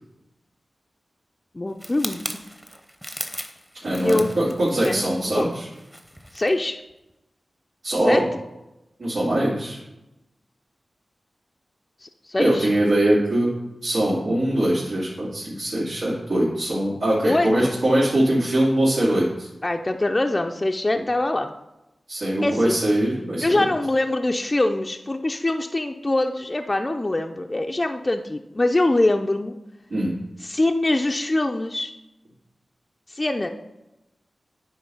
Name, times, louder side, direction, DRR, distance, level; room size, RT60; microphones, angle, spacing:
voice 1, 1.5-2.2 4.0-4.3 4.8-5.5 6.3-6.8 8.1-8.2 12.0-12.7 17.2-17.7 19.6-21.5 22.4-22.8 23.4-29.5 30.4-31.9 33.1-33.5, left 2 dB, 30° left, 4 dB, 0.5 m, -23 dB
sound 1, 1.8-6.5 6.9-7.1, equal, 5° right, 0.8 m, -37 dB
voice 2, 3.8-5.6 7.8-8.2 9.0-9.8 12.4-13.5 13.8-19.5 22.1-23.6 29.9-30.1, right 1 dB, 85° right, -11 dB, 2.8 m, -22 dB
9.6 x 3.2 x 5.6 m, 0.93 s
cardioid pair, 45°, 0 cm